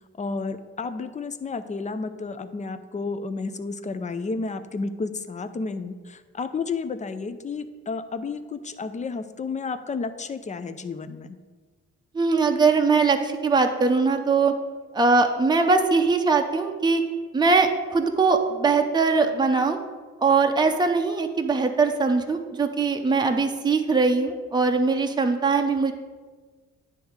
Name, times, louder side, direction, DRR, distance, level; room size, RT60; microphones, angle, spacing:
voice 1, 0.2-11.4, left 4 dB, 25° left, 11 dB, 0.5 m, -31 dB
voice 2, 12.1-14.5 14.9-17.0 17.3-19.8 20.2-25.9, right 4 dB, 15° right, 4 dB, 0.7 m, -21 dB
9.9 x 3.5 x 6.4 m, 1.4 s
cardioid pair, 90°, 30 cm